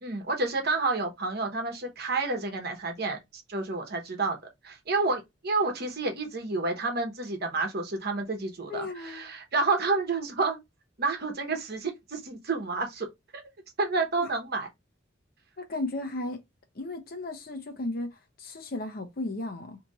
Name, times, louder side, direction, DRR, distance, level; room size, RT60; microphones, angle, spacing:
voice 1, 0.0-4.4 4.6-10.6 11.0-13.1 13.3-13.4 13.8-14.7, right 3 dB, 55° right, 1.0 m, -29 dB
voice 2, 8.7-9.3 14.2-14.3 15.6-16.4 16.7-19.8, left 2 dB, 50° left, 0.8 m, -35 dB
2.9 x 2.5 x 4.0 m
head